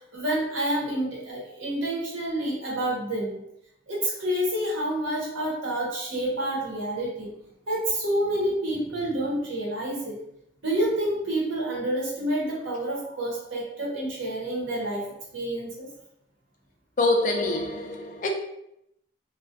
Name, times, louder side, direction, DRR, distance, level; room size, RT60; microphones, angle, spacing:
voice 1, 0.1-3.4 3.9-7.3 7.7-10.2 10.6-15.9, right 1 dB, 85° right, 0.9 m, -28 dB
voice 2, 17.0-18.3, left 2 dB, 40° left, 0.3 m, -25 dB
2.3 x 2.1 x 2.5 m
head